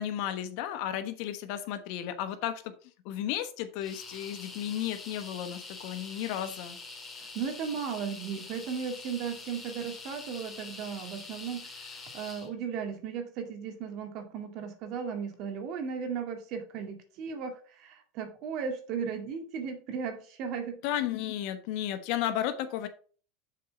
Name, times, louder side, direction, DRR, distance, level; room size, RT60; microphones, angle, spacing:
voice 1, 0.0-2.7 3.0-6.8 20.8-22.9, left 11 dB, 65° left, 9 dB, 1.1 m, -33 dB
sound 1, 3.8-12.5, left 3 dB, 20° left, 2.0 m, -45 dB
voice 2, 7.2-20.8, right 6 dB, 55° right, 5 dB, 2.0 m, -36 dB
7.3 x 4.4 x 5.2 m, 0.41 s
supercardioid pair, 120°, 0 cm